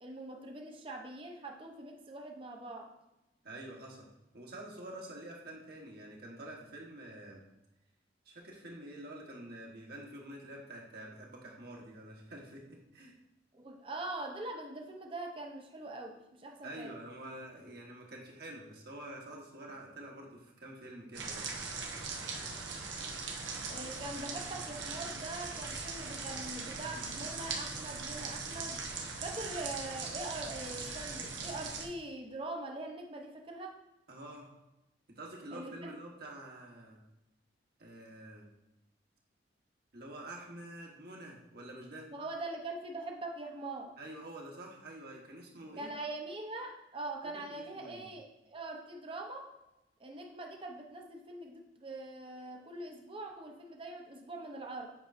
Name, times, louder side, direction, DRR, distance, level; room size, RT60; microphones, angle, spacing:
voice 1, 0.0-2.9 13.5-16.9 23.7-28.8 29.2-33.8 35.5-35.9 42.1-43.9 45.8-49.5 50.0-54.9, right 2 dB, 30° right, 1 dB, 0.7 m, -43 dB
voice 2, 3.4-4.1 4.3-7.4 8.2-13.1 16.6-21.5 34.1-34.5 35.1-37.0 37.8-38.5 39.9-42.1 44.0-45.9 47.5-48.1, right 1 dB, 55° right, -1 dB, 1.3 m, -47 dB
sound 1, 21.1-31.9, right 4 dB, 75° right, 0.9 m, -40 dB
7.8 x 5.3 x 2.6 m, 0.94 s
head